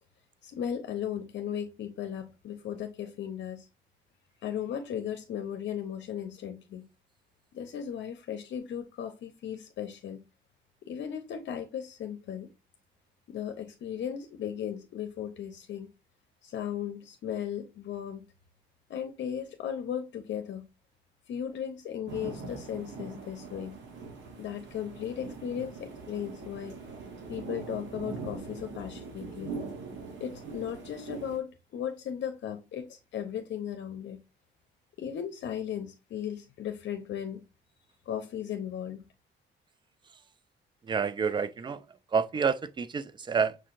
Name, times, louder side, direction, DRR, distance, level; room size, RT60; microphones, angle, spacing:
voice 1, 0.4-3.7 4.4-6.9 7.5-10.2 10.9-12.5 13.3-15.9 16.4-18.3 18.9-20.7 21.3-23.8 24.4-26.8 27.3-29.6 30.2-34.2 35.0-37.4 38.1-39.0, left 9 dB, 65° left, 0.6 m, -36 dB
sound 1, 22.1-31.4, right 4 dB, 70° right, 1.2 m, -42 dB
voice 2, 40.8-43.6, right 6 dB, 25° right, 0.4 m, -29 dB
6.3 x 2.8 x 2.5 m
cardioid pair, 90°, 20 cm